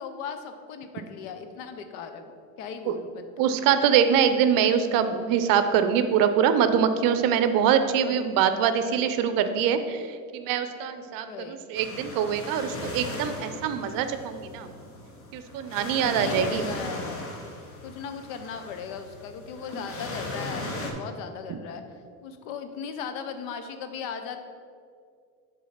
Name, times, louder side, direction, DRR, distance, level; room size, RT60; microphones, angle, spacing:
voice 1, 0.0-3.7 11.2-11.6 15.7-17.4 17.8-21.8 22.2-24.4, left 6 dB, 70° left, 7 dB, 0.9 m, -38 dB
voice 2, 3.4-10.1 10.3-14.7 15.3-16.7 21.5-21.6, right 8 dB, 50° right, 9 dB, 0.7 m, -24 dB
sound 1, 11.7-20.9, left 2 dB, 30° left, 1.3 m, -37 dB
7.4 x 4.0 x 5.7 m, 2.2 s
supercardioid pair, 100°, 42 cm